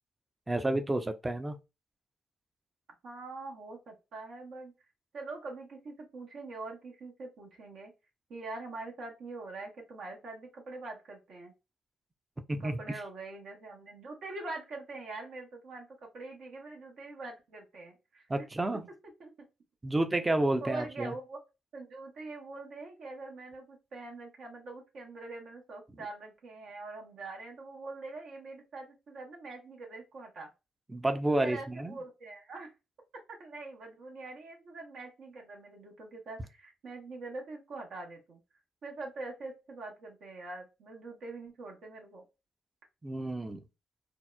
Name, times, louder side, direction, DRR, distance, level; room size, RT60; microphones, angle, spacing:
voice 1, 0.5-1.6 12.5-13.0 18.3-18.9 19.8-21.1 30.9-32.0 43.0-43.6, right 1 dB, 20° right, 0.5 m, -30 dB
voice 2, 3.0-4.7 5.1-7.9 8.3-11.5 12.6-18.3 19.2-19.3 20.6-21.4 21.7-30.5 31.4-32.7 33.4-38.4 38.8-42.2, right 3 dB, 65° right, 0.7 m, -44 dB
2.7 x 2.0 x 2.2 m
hypercardioid pair, 45°, 0 cm